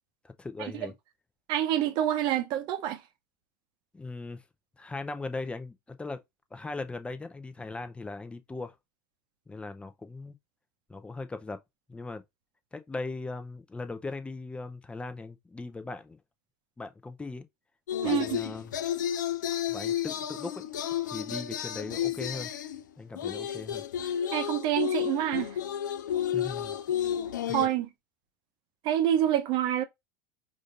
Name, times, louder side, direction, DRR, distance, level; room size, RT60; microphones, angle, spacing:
voice 1, 0.4-0.9 3.9-4.4 4.8-6.2 6.5-8.7 9.5-10.4 10.9-11.6 11.9-12.2 12.7-16.2 16.8-17.5 18.0-18.7 19.7-20.6 21.1-22.5 23.0-23.8 26.3-26.8, left 3 dB, 10° left, 0.6 m, -39 dB
voice 2, 1.5-3.0 18.0-18.4 24.3-25.5 27.5-27.9 28.8-29.8, right 11 dB, 50° right, 0.7 m, -27 dB
sound 1, 17.9-22.8 23.2-27.7, left 10 dB, 80° left, 0.4 m, -32 dB
5.0 x 2.6 x 2.4 m
hypercardioid pair, 85°, 10 cm